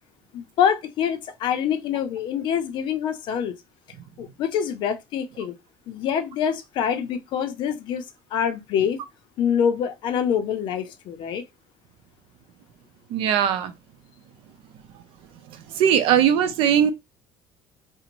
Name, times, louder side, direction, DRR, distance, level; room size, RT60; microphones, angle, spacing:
voice 1, 0.3-3.6 4.2-5.5 5.9-8.0 8.3-9.0 9.4-11.5, left 8 dB, 60° left, 0.5 m, -25 dB
voice 2, 13.1-13.7 15.5-16.9, right 9 dB, 75° right, 0.5 m, -20 dB
2.5 x 2.1 x 2.9 m
cardioid pair, 145°, 9 cm